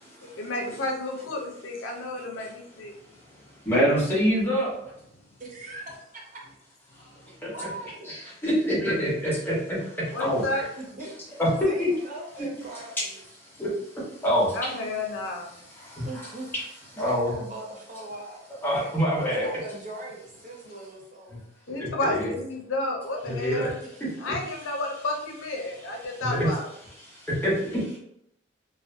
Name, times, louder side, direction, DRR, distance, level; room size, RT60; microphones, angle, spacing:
voice 1, 0.4-2.9 10.1-10.6 14.5-15.5 21.7-23.7 24.2-26.7, left 2 dB, 85° left, 1 dB, 0.6 m, -31 dB
voice 2, 3.0-3.4 3.6-4.7 7.0-7.5 8.0-10.6 11.4-11.9 12.4-12.5 13.4-14.8 15.5-16.6 16.9-17.3 18.6-19.5 21.7-22.3 23.2-23.7 24.0-24.3 26.2-26.5 27.0-28.0, equal, 10° left, -7 dB, 0.9 m, -27 dB
voice 3, 5.4-6.4 7.5-8.0 10.8-11.1 11.7-13.2 16.0-16.5 16.9-18.5 19.2-21.4, right 2 dB, 40° right, -2 dB, 0.6 m, -40 dB
2.5 x 2.1 x 2.4 m, 0.75 s
head